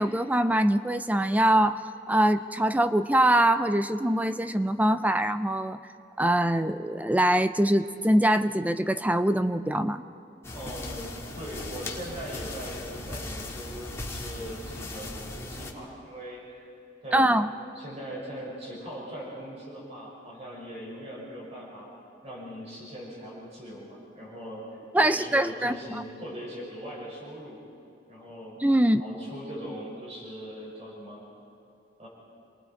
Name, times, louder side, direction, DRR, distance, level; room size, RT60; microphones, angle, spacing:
voice 1, 0.0-1.8 2.1-5.8 6.2-10.0 17.1-17.5 24.9-25.7 28.6-29.0, right 1 dB, 10° right, 11 dB, 0.5 m, -23 dB
sound 1, 10.4-15.7, left 2 dB, 15° left, 1.7 m, -38 dB
voice 2, 10.5-16.7 17.0-17.2 17.7-21.9 22.2-24.6 25.0-27.6 28.1-28.6 29.0-31.2 32.0-32.1, equal, 35° right, -5 dB, 6.2 m, -40 dB
28.5 x 20.0 x 4.6 m, 2.7 s
head